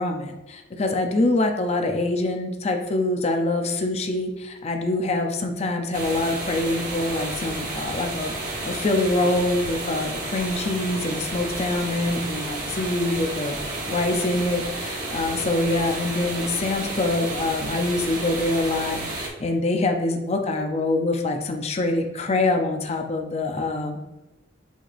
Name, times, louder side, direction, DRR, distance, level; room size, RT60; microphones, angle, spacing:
voice 1, 0.0-13.6 13.9-24.0, left 2 dB, 35° left, 4 dB, 0.5 m, -25 dB
sound 1, 5.9-19.3, right 2 dB, 45° right, 1.1 m, -31 dB
6.2 x 3.3 x 2.6 m, 1.0 s
head